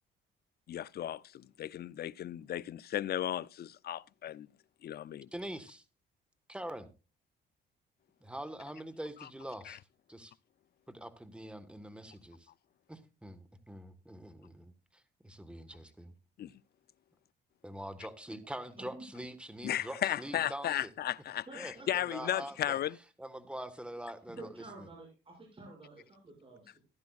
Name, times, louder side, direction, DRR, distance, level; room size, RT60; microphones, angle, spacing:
voice 1, 0.7-4.5 4.8-5.3 9.2-9.3 9.7-9.8 16.4-16.5 19.6-23.0, left 11 dB, 55° left, 0.5 m, -35 dB
voice 2, 5.3-5.8 6.5-6.9 8.2-9.8 10.1-10.3 10.9-12.5 12.9-16.1 17.6-20.9 21.5-22.8 23.2-24.9, right 1 dB, 5° right, 1.4 m, -44 dB
voice 3, 21.5-22.5 24.4-26.8, right 2 dB, 25° right, 6.6 m, -50 dB
14.5 x 11.5 x 2.4 m
cardioid pair, 90°, 20 cm